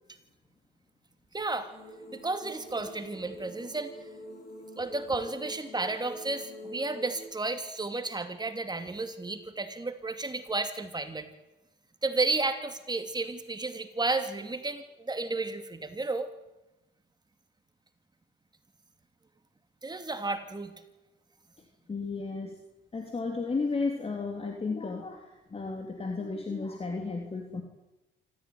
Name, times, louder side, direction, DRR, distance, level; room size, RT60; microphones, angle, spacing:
voice 1, 1.3-1.7 2.1-3.9 4.8-11.3 12.0-16.3 19.8-20.7, right 3 dB, 20° right, 8 dB, 2.7 m, -32 dB
sound 1, 1.7-7.2, equal, 50° left, 6.8 m, -45 dB
voice 2, 21.9-22.6 22.9-27.6, left 4 dB, 30° left, 3 dB, 3.2 m, -33 dB
26.0 x 14.5 x 9.4 m, 0.99 s
cardioid pair, 90°, 20 cm